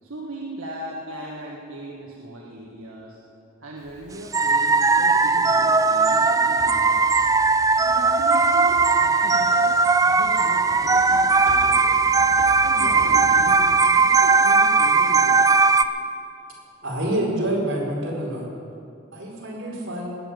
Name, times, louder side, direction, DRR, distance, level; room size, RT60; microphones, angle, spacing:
voice 1, 0.0-3.2 3.6-7.0 7.8-9.7 10.1-11.9 12.6-15.4, right 1 dB, 80° right, -3 dB, 1.7 m, -37 dB
Typing, 3.8-14.8, equal, 35° left, 3.6 m, -44 dB
sound 1, 4.3-15.8, right 4 dB, 15° right, 0.4 m, -18 dB
voice 2, 16.8-18.4 19.1-20.2, right 1 dB, 65° right, -4 dB, 4.9 m, -27 dB
20.0 x 7.1 x 9.3 m, 2.6 s
head